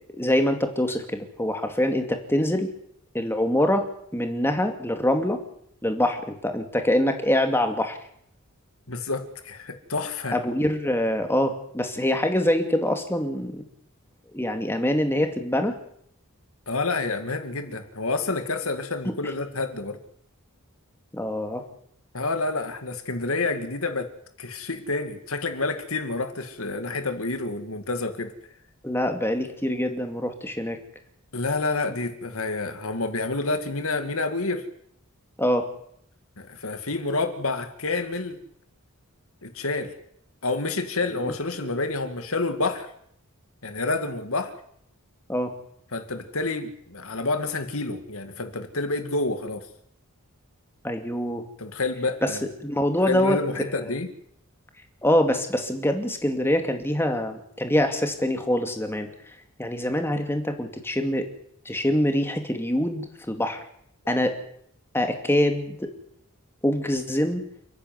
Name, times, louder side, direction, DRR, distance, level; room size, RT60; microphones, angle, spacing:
voice 1, 0.2-2.7 3.1-5.4 5.8-8.0 10.3-13.6 14.3-15.8 21.1-21.6 28.8-30.8 35.4-35.7 41.2-41.3 45.3-45.5 50.8-51.4 52.2-53.4 53.7-53.9 55.0-59.1 59.6-61.3 61.6-63.6 64.1-64.4 64.9-65.9 66.6-67.4, left 1 dB, 10° left, 5 dB, 2.5 m, -24 dB
voice 2, 8.9-10.4 16.7-20.0 22.1-24.1 24.4-28.3 31.3-34.7 36.4-38.4 39.4-39.9 40.4-42.9 43.6-44.5 45.9-49.7 51.6-52.5 53.1-54.1, left 3 dB, 65° left, 8 dB, 2.5 m, -28 dB
29.5 x 10.5 x 9.7 m, 0.69 s
head